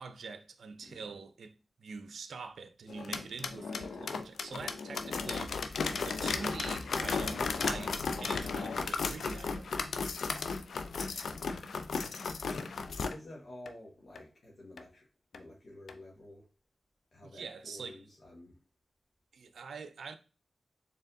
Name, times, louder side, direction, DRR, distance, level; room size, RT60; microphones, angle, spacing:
voice 1, 0.0-9.8 17.2-18.0 19.3-20.2, right 4 dB, 85° right, 0.4 m, -45 dB
voice 2, 0.8-1.1 11.2-11.6 13.0-15.1 15.3-16.5 17.1-18.6, left 1 dB, 65° left, 1.2 m, -51 dB
sound 1, 2.9-13.1 13.7-13.8 14.2-14.3 14.8-14.9 15.3-15.4 15.9-16.0, left 4 dB, 85° left, 0.4 m, -35 dB
4.4 x 3.4 x 2.6 m
cardioid pair, 60°, 0 cm